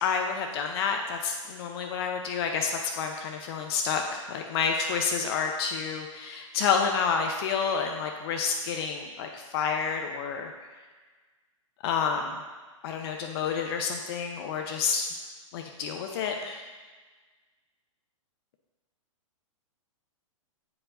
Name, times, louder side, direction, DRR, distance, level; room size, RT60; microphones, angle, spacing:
voice 1, 0.0-10.5 11.8-12.4 12.8-15.1 15.5-16.6, left 6 dB, 45° left, 3 dB, 0.7 m, -29 dB
9.4 x 4.8 x 2.6 m, 1.3 s
hypercardioid pair, 120°, 17 cm